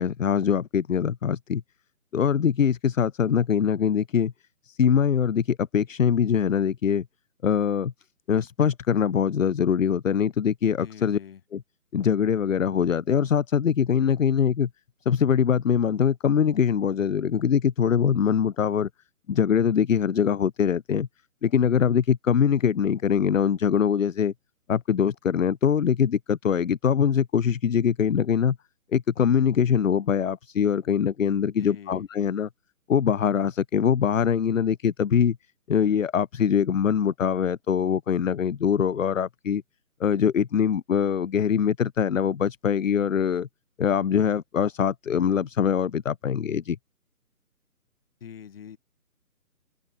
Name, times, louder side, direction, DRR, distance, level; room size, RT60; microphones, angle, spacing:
voice 1, 0.0-1.6 2.1-4.3 4.6-7.1 7.4-7.9 8.3-11.2 11.5-11.6 11.9-14.7 15.1-18.9 19.3-21.1 21.4-24.3 24.7-28.6 28.9-32.5 32.9-35.4 35.7-39.6 40.0-43.5 43.8-46.8, left 7 dB, 60° left, 0.8 m, -23 dB
voice 2, 10.8-11.4 31.6-32.0 48.2-48.8, left 8 dB, 40° left, 3.8 m, -44 dB
open air
figure-of-eight pair, 150°, 44 cm